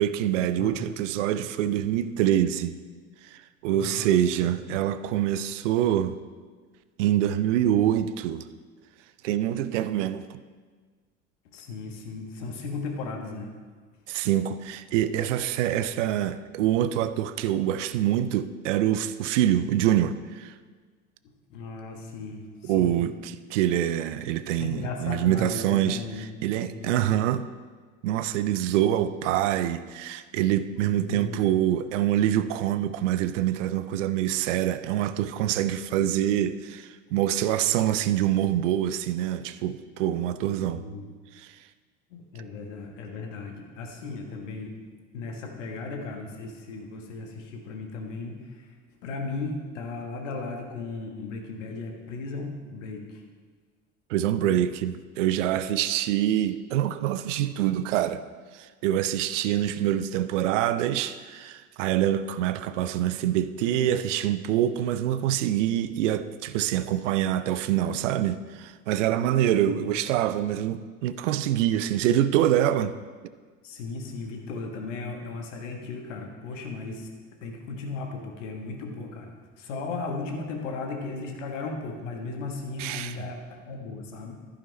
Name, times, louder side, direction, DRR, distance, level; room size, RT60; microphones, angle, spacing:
voice 1, 0.0-2.8 3.2-6.1 7.0-8.4 9.2-10.4 14.1-20.5 22.6-27.4 28.0-40.8 41.4-41.5 54.1-58.2 58.5-72.9 82.8-83.2, right 11 dB, 65° right, 0.5 m, -25 dB
voice 2, 3.7-4.2 4.4-4.5 11.5-13.5 21.5-23.0 24.6-26.4 26.7-26.9 30.9-31.4 40.6-41.1 42.1-44.8 45.1-48.8 49.0-53.2 69.7-69.9 73.6-77.1 77.4-84.4, left 3 dB, 65° left, 1.5 m, -36 dB
11.0 x 9.7 x 3.2 m
figure-of-eight pair, 65°, 40 cm